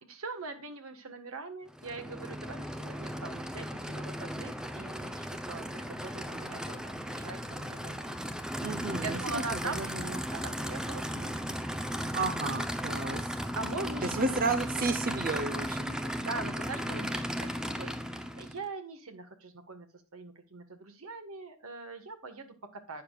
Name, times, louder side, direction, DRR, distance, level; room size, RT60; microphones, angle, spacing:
voice 1, 0.0-8.2 9.0-10.0 10.3-11.6 13.5-14.3 16.2-17.5 17.8-19.9 20.1-23.0, right 3 dB, 75° right, 6 dB, 1.5 m, -42 dB
Aircraft / Idling, 1.7-18.6, equal, 5° right, 0.6 m, -36 dB
voice 2, 8.6-10.2 12.1-13.2 14.0-16.1, right 3 dB, 40° right, 9 dB, 0.8 m, -32 dB
11.5 x 8.7 x 2.4 m, 0.34 s
head